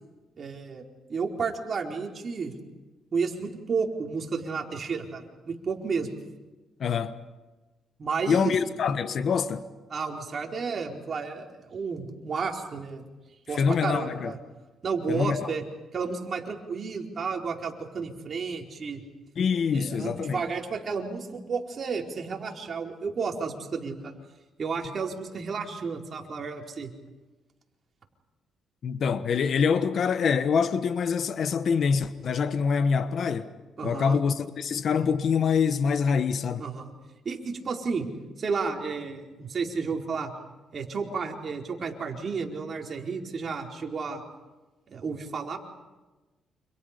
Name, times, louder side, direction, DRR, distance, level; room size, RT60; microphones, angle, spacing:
voice 1, 0.4-0.8 1.1-2.5 3.1-6.1 8.0-8.6 9.9-13.0 13.5-14.4 14.8-15.6 15.9-19.0 19.7-24.1 24.6-26.9 33.8-34.2 36.6-36.9 37.2-38.1 38.4-40.3 40.7-44.2 44.9-45.6, right 5 dB, 45° right, 4.5 m, -32 dB
voice 2, 6.8-7.1 8.3-9.6 13.5-14.3 15.1-15.5 19.4-20.4 28.8-33.5 33.8-36.7, left 6 dB, 60° left, 1.3 m, -25 dB
30.0 x 27.5 x 5.3 m
cardioid pair, 90°, 0 cm